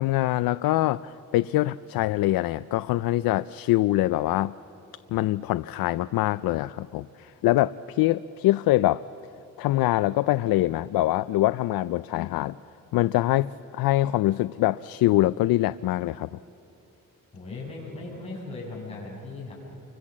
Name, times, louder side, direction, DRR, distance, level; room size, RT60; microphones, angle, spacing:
voice 1, 0.0-4.5 5.1-9.1 9.6-12.6 12.9-16.4, left 16 dB, 85° left, 14 dB, 0.5 m, -24 dB
voice 2, 17.3-19.5, left 3 dB, 20° left, -4 dB, 6.9 m, -38 dB
29.0 x 24.5 x 7.4 m, 2.8 s
cardioid pair, 175°, 34 cm